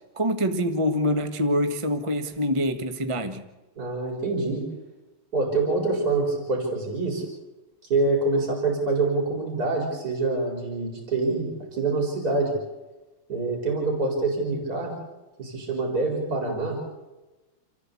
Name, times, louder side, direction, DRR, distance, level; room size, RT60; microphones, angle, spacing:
voice 1, 0.1-3.4, equal, 15° right, 7 dB, 1.2 m, -25 dB
voice 2, 3.8-4.7 5.3-7.2 7.9-12.5 13.3-14.9 15.4-16.8, right 3 dB, 45° right, 0 dB, 5.3 m, -25 dB
29.5 x 14.5 x 8.4 m, 1.1 s
omnidirectional pair, 2.3 m